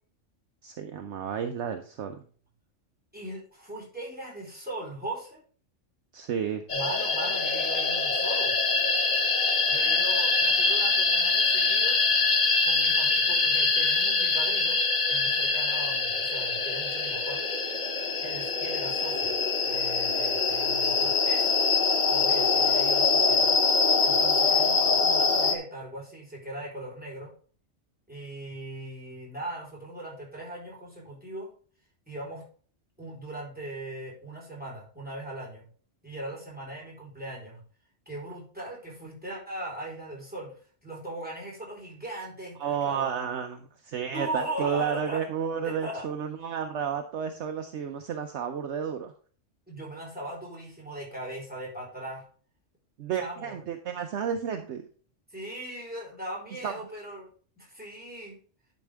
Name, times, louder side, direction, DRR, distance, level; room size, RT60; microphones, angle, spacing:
voice 1, 0.6-2.2 6.1-6.6 42.6-49.1 53.0-54.9 56.6-56.7, right 7 dB, 65° right, 6 dB, 1.0 m, -32 dB
voice 2, 3.1-5.4 6.7-8.6 9.7-12.1 12.6-14.8 15.1-17.4 18.2-19.4 19.6-21.6 22.1-23.6 24.0-27.3 28.1-31.5 32.1-32.4 33.0-35.7 36.0-37.6 38.1-40.5 40.8-42.5 42.8-43.1 44.1-45.2 45.6-46.0 49.7-52.2 53.2-53.6 55.3-57.3 57.6-58.4, right 1 dB, 5° right, -4 dB, 4.0 m, -39 dB
sound 1, 6.7-25.6, left 4 dB, 40° left, 1.0 m, -24 dB
10.5 x 5.3 x 3.4 m, 0.43 s
omnidirectional pair, 1.3 m